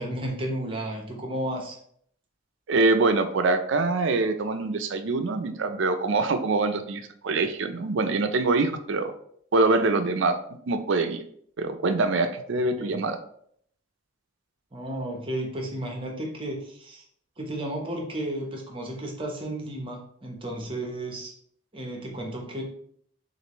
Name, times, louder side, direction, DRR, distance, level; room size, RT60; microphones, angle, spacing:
voice 1, 0.0-1.8 12.8-13.0 14.7-17.0 17.4-21.3 21.7-22.6, right 1 dB, 25° right, 0 dB, 0.8 m, -33 dB
voice 2, 2.7-9.1 9.5-10.4 10.7-11.2 11.6-13.2, right 3 dB, 60° right, 8 dB, 0.5 m, -24 dB
6.5 x 2.5 x 3.0 m, 0.66 s
head